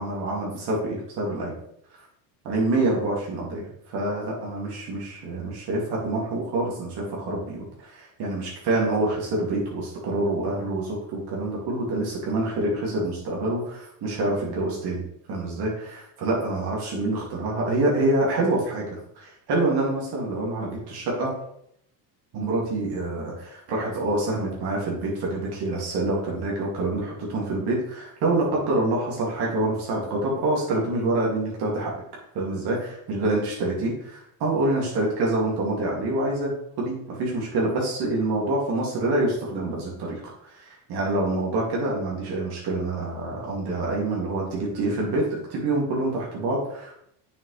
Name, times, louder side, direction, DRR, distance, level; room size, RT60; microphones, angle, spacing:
voice 1, 0.0-1.5 1.9-2.1 2.4-15.0 15.3-21.3 22.3-31.9 32.3-36.5 36.8-47.1, right 2 dB, 50° right, -3 dB, 2.5 m, -26 dB
7.3 x 6.2 x 3.3 m, 0.72 s
supercardioid pair, 105°, 50 cm